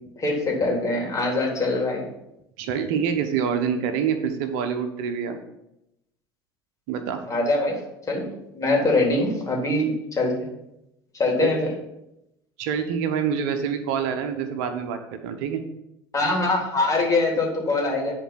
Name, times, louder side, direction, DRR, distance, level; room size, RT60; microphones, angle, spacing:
voice 1, 0.2-2.0 7.3-7.8 8.1-9.8 10.1-10.3 11.2-11.7 16.1-18.1, left 2 dB, 25° left, -1 dB, 3.6 m, -23 dB
voice 2, 2.6-5.4 6.9-7.2 11.4-11.5 12.6-15.6, right 7 dB, 65° right, 7 dB, 1.0 m, -26 dB
10.5 x 4.6 x 5.9 m, 0.85 s
hypercardioid pair, 70°, 12 cm